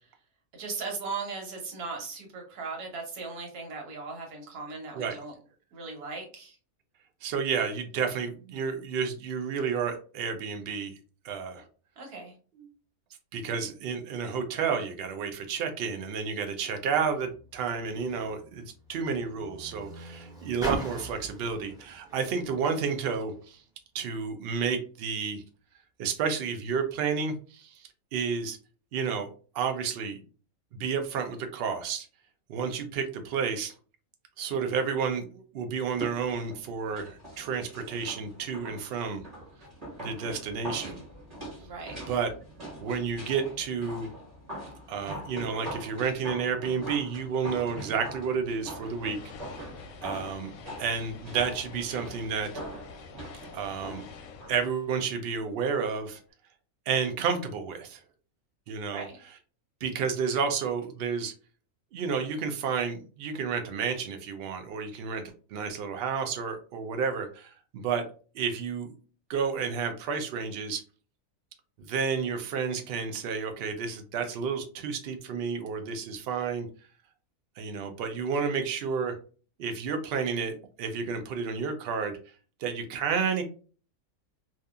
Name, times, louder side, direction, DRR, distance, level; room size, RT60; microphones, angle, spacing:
voice 1, 0.6-5.3 5.7-6.6 12.0-12.3 41.6-42.0 58.9-59.2, right 4 dB, 85° right, 2 dB, 1.4 m, -38 dB
voice 2, 7.2-11.0 11.2-11.6 12.6-12.7 13.3-23.6 23.9-25.4 26.0-28.6 28.9-29.3 29.5-30.2 30.7-32.1 32.5-33.7 34.4-39.2 40.0-41.0 42.1-42.3 42.8-44.1 44.9-49.2 50.0-50.5 50.8-52.5 53.5-54.0 54.5-56.2 56.9-58.0 58.7-59.1 59.8-61.3 61.9-65.2 65.5-68.0 68.3-68.9 69.3-70.8 71.8-76.7 77.6-79.2 79.6-82.2 82.6-83.4, right 6 dB, 70° right, 5 dB, 0.5 m, -31 dB
Car, 17.3-23.6 24.4-24.5, right 2 dB, 5° right, 0.4 m, -41 dB
sound 1, 35.9-54.7 55.0-55.1, right 1 dB, 30° right, 1.1 m, -42 dB
sound 2, 48.5-56.0, left 5 dB, 70° left, 0.8 m, -48 dB
2.7 x 2.4 x 2.3 m, 0.38 s
omnidirectional pair, 1.5 m